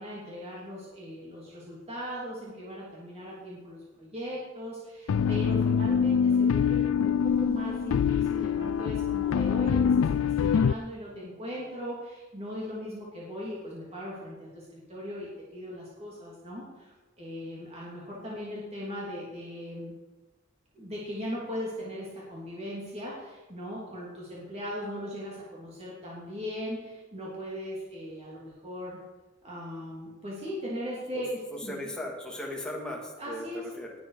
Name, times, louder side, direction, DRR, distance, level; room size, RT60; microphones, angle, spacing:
voice 1, 0.0-19.9 20.7-29.0 29.4-31.8 33.2-33.7, equal, 30° right, -5 dB, 3.2 m, -39 dB
sound 1, 5.1-10.7, left 7 dB, 85° left, 0.3 m, -24 dB
voice 2, 31.5-33.5 33.8-33.9, left 1 dB, 5° left, -3 dB, 2.8 m, -37 dB
19.0 x 8.9 x 5.0 m, 1.2 s
head